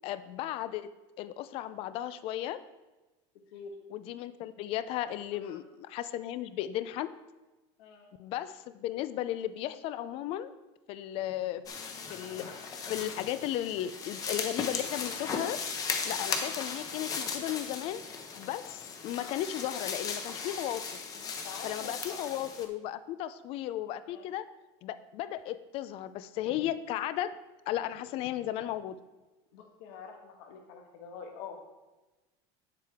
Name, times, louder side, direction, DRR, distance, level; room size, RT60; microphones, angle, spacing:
voice 1, 0.0-0.9 1.2-2.6 3.9-7.1 8.2-10.5 10.9-11.6 12.1-12.5 12.9-15.6 16.0-18.0 18.4-20.9 21.6-24.5 24.8-27.4 27.7-29.0, left 12 dB, 40° left, 14 dB, 0.4 m, -35 dB
sound 1, 11.7-22.7, left 5 dB, 25° left, 0.8 m, -37 dB
voice 2, 21.1-22.2 24.0-24.3 29.5-31.6, left 6 dB, 70° left, 2 dB, 1.4 m, -46 dB
8.4 x 7.5 x 3.6 m, 1.1 s
cardioid pair, 160°, 14 cm